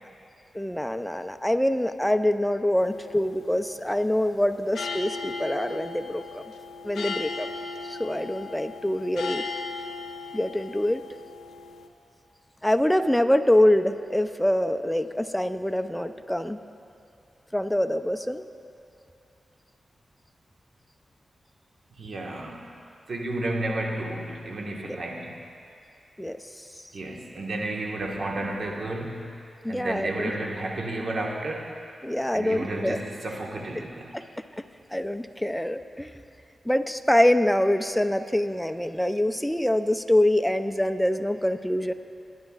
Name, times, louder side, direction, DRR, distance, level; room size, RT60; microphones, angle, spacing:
voice 1, 0.5-6.4 6.8-7.5 7.9-9.5 10.3-11.0 12.6-16.6 17.5-18.4 24.9-25.0 26.2-26.4 29.6-30.3 32.0-33.0 34.1-34.2 34.9-36.2 36.7-41.9, left 1 dB, 5° left, 9 dB, 0.6 m, -25 dB
sound 1, 2.8-11.9, left 4 dB, 90° left, 0.6 m, -37 dB
voice 2, 22.0-22.6 23.1-25.4 26.9-29.3 29.7-31.7 32.3-34.2, right 2 dB, 70° right, -1 dB, 1.6 m, -32 dB
20.5 x 10.5 x 2.5 m, 2.7 s
cardioid pair, 50°, 0 cm